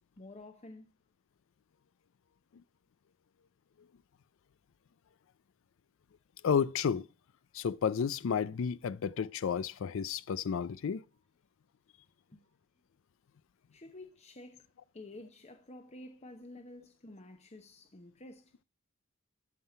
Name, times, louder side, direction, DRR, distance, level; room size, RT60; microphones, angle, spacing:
voice 1, 0.2-0.9 12.3-12.4 13.7-14.7 14.9-18.5, left 2 dB, 30° left, 0.9 m, -50 dB
voice 2, 6.4-7.0 7.5-11.0, left 7 dB, 60° left, 0.4 m, -31 dB
13.5 x 5.6 x 4.3 m
head